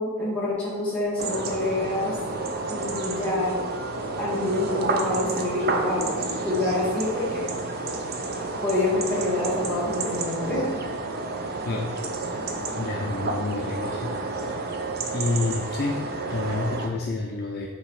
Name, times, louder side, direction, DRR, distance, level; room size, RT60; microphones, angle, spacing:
voice 1, 0.0-2.2 2.7-3.6 4.0-6.1 6.4-7.5 8.6-10.7, left 2 dB, 5° left, -9 dB, 1.8 m, -27 dB
sound 1, 1.2-16.9, right 3 dB, 45° right, 0.5 m, -30 dB
voice 2, 12.8-14.1 14.6-14.7 15.1-16.0 16.3-17.7, left 3 dB, 45° left, -1 dB, 0.5 m, -28 dB
6.9 x 2.9 x 4.8 m, 1.4 s
head